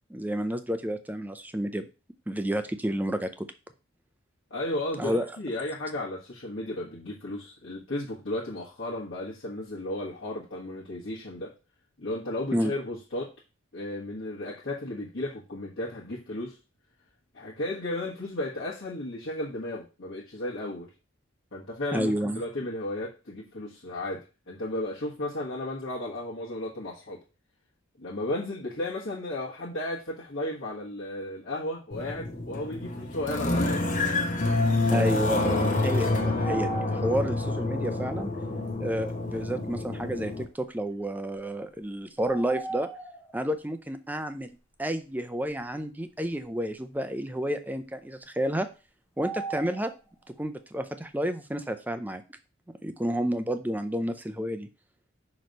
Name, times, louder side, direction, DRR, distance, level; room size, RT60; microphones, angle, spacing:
voice 1, 0.1-1.9 2.3-3.5 5.0-5.3 12.5-12.7 21.9-22.4 34.9-38.3 38.8-42.9 43.3-48.7 49.2-49.9 50.4-52.4 52.8-54.7, equal, 10° right, 0.5 m, -30 dB
voice 2, 4.5-11.5 12.0-13.3 13.7-16.6 17.3-20.9 21.5-27.2 28.0-33.9 36.9-37.2, left 1 dB, 60° left, 1.5 m, -34 dB
sound 1, 31.9-40.4, left 2 dB, 40° left, 1.0 m, -28 dB
sound 2, 36.4-37.4 38.1-38.2 39.8-39.9 42.2-43.4 49.2-50.0, right 3 dB, 10° left, 0.9 m, -37 dB
6.1 x 3.2 x 5.2 m
head